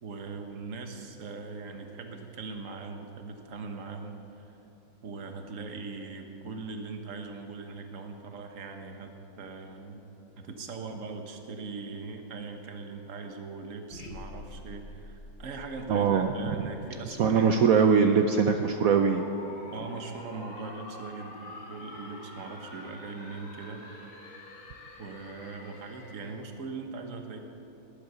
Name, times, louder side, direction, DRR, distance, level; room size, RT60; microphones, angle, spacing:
voice 1, 0.0-4.5 5.0-9.1 9.4-10.0 10.4-18.0 19.7-23.8 25.0-27.4, right 4 dB, 45° right, 5 dB, 1.4 m, -40 dB
sound 1, 13.9-18.0, left 1 dB, 35° left, 1.4 m, -47 dB
voice 2, 15.9-16.3 17.2-19.3, right 6 dB, 75° right, 5 dB, 0.8 m, -22 dB
sound 2, 17.6-26.5, left 2 dB, 75° left, 3.3 m, -47 dB
18.5 x 8.6 x 6.8 m, 2.9 s
omnidirectional pair, 2.2 m